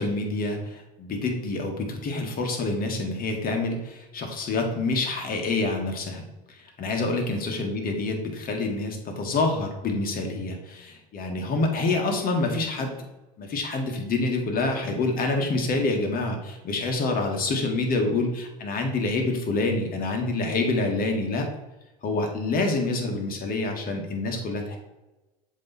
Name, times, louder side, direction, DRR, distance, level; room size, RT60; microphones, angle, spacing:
voice 1, 0.0-13.0 13.4-21.5 22.0-24.8, left 3 dB, 45° left, 3 dB, 1.7 m, -27 dB
7.4 x 3.2 x 4.1 m, 1.0 s
hypercardioid pair, 75°, 20 cm